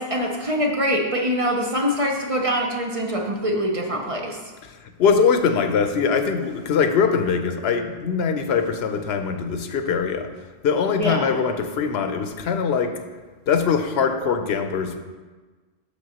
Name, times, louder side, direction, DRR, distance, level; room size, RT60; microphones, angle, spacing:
voice 1, 0.0-4.4 11.0-11.3, equal, 40° right, 1 dB, 0.6 m, -24 dB
voice 2, 5.0-10.3 10.6-12.9 13.5-15.0, left 6 dB, 75° left, 7 dB, 0.9 m, -22 dB
7.5 x 6.7 x 2.9 m, 1.3 s
omnidirectional pair, 1.1 m